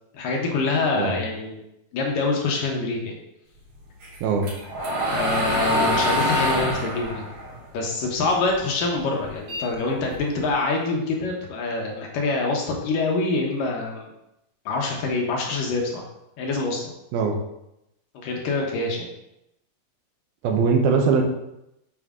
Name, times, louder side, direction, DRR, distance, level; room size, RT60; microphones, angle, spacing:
voice 1, 0.1-1.6 1.9-3.2 5.1-7.2 7.7-14.1 14.7-16.1 16.4-16.8 18.1-19.1, left 3 dB, 70° left, 0 dB, 2.4 m, -25 dB
sound 1, 4.0-8.5 8.9-10.5, equal, 60° right, 3.6 m, -25 dB
voice 2, 20.4-21.2, right 5 dB, 80° right, 3 dB, 2.7 m, -21 dB
7.3 x 6.2 x 3.6 m, 0.85 s
omnidirectional pair, 4.4 m